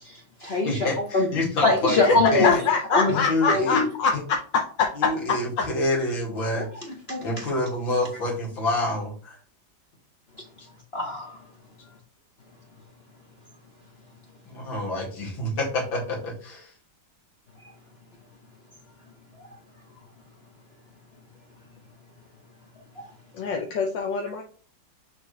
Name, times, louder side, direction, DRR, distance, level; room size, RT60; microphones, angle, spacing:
voice 1, 0.0-1.3 1.6-2.6 2.9-3.1 3.5-3.9 6.5-6.6 7.1-7.4 10.9-11.4 23.0-23.1, left 3 dB, 45° left, 0 dB, 0.8 m, -23 dB
voice 2, 0.6-2.6 3.1-3.8 5.0-6.9 7.2-9.4 14.5-16.7, left 1 dB, 85° left, -3 dB, 3.0 m, -27 dB
voice 3, 1.9-4.1 4.5-4.9 23.3-24.4, left 5 dB, 70° left, 1 dB, 1.5 m, -24 dB
6.4 x 4.8 x 3.2 m, 0.42 s
omnidirectional pair, 2.1 m